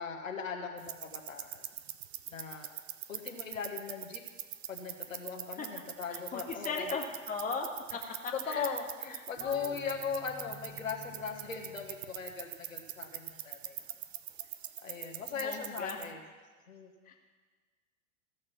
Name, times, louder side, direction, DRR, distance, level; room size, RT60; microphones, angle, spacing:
voice 1, 0.0-1.6 2.3-2.7 3.1-4.2 4.7-6.9 8.0-13.8 14.8-16.2 16.7-17.1, left 6 dB, 75° left, 2 dB, 1.6 m, -39 dB
sound 1, 0.8-16.1, right 13 dB, 50° right, 0.7 m, -44 dB
voice 2, 6.1-7.7 8.2-8.7 9.4-9.7 15.4-16.0 17.1-17.2, left 4 dB, 20° left, 0 dB, 1.8 m, -37 dB
sound 2, 9.4-13.3, right 1 dB, 35° right, 2.1 m, -55 dB
15.5 x 6.6 x 5.7 m, 1.5 s
figure-of-eight pair, 95°, 40 cm